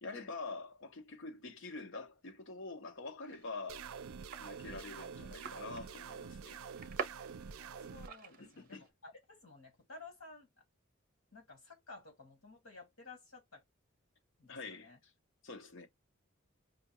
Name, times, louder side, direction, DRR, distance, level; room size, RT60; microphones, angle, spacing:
voice 1, 0.0-3.9 4.4-6.6 8.4-8.8 14.5-15.1 15.4-15.9, left 3 dB, 65° left, 0.8 m, -46 dB
sound 1, 3.3-8.9, right 5 dB, 45° right, 0.7 m, -48 dB
sound 2, 3.7-8.1, right 6 dB, 85° right, 0.4 m, -47 dB
voice 2, 7.5-10.5 11.3-13.6 14.4-15.0, left 3 dB, 80° left, 1.8 m, -54 dB
5.0 x 2.3 x 2.9 m
head